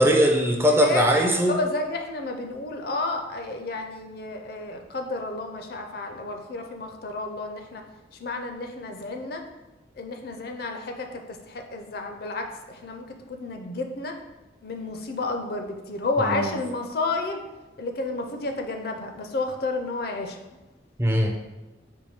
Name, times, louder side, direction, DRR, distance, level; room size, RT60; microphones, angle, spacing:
voice 1, 0.0-1.5 16.2-16.5 21.0-21.3, equal, 10° right, 2 dB, 0.3 m, -20 dB
voice 2, 0.7-7.8 8.2-9.4 10.0-14.2 14.6-17.4 17.8-20.4, left 2 dB, 55° left, 4 dB, 0.5 m, -31 dB
4.7 x 2.6 x 4.3 m, 1.1 s
head